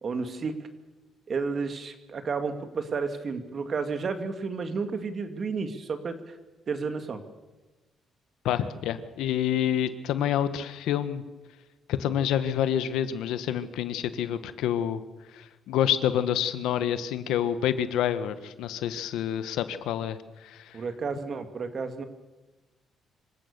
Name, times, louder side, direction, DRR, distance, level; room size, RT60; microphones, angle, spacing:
voice 1, 0.0-0.5 1.3-6.4 6.7-7.2 20.7-22.0, right 4 dB, 45° right, 8 dB, 2.3 m, -31 dB
voice 2, 8.4-11.2 11.9-15.0 15.3-20.7, left 10 dB, 90° left, 12 dB, 1.2 m, -28 dB
26.0 x 16.0 x 6.8 m, 1.2 s
cardioid pair, 90°, 0 cm